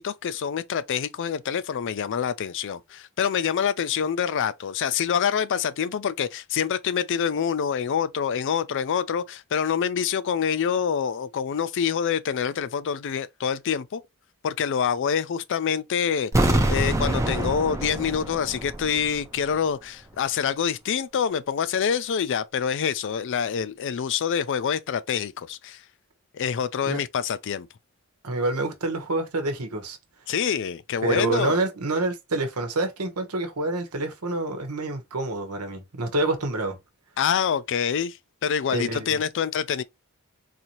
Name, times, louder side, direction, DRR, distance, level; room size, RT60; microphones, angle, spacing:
voice 1, 0.0-14.0 14.4-25.8 26.3-27.7 30.3-31.6 37.2-38.2 38.4-39.8, left 7 dB, 55° left, 0.4 m, -26 dB
sound 1, 16.3-19.2 19.5-19.6, right 1 dB, 15° right, 0.6 m, -25 dB
voice 2, 28.2-30.0 31.0-36.8 38.7-39.2, right 2 dB, 85° right, 1.1 m, -27 dB
4.1 x 2.7 x 3.0 m
head